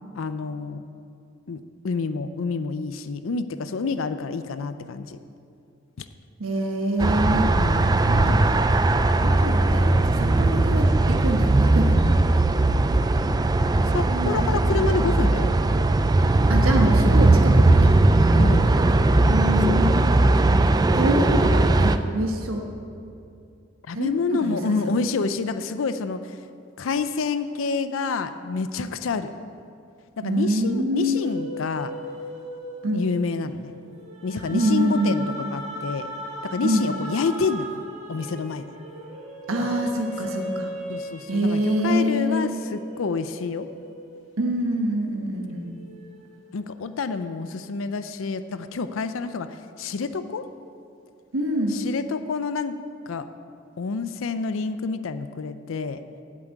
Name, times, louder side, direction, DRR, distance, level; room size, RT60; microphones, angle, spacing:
voice 1, 0.2-0.9 1.5-5.2 6.0-6.1 7.3-8.5 9.2-9.5 13.9-15.6 18.3-18.7 19.7-19.9 23.9-26.4 26.8-29.3 30.2-31.9 32.9-33.7 34.2-36.1 36.4-37.8 38.1-38.7 39.6-39.8 40.9-43.7 46.5-50.5 51.7-52.8 53.1-53.3 53.8-56.0, left 4 dB, 70° left, 11 dB, 0.5 m, -28 dB
voice 2, 6.4-7.5 8.1-8.6 8.9-9.0 9.2-12.0 14.1-14.5 16.5-17.9 19.3-20.2 20.9-22.6 23.9-24.8 30.2-31.2 32.8-33.1 34.5-35.2 36.6-36.9 39.5-40.7 41.3-42.5 44.4-45.8 51.3-51.9, equal, 80° right, 1 dB, 1.2 m, -25 dB
sound 1, 7.0-22.0, right 2 dB, 20° right, 0.3 m, -19 dB
sound 2, 31.2-44.9 45.3-47.0, equal, 35° right, 1.7 m, -38 dB
8.0 x 7.6 x 8.8 m, 2.5 s
head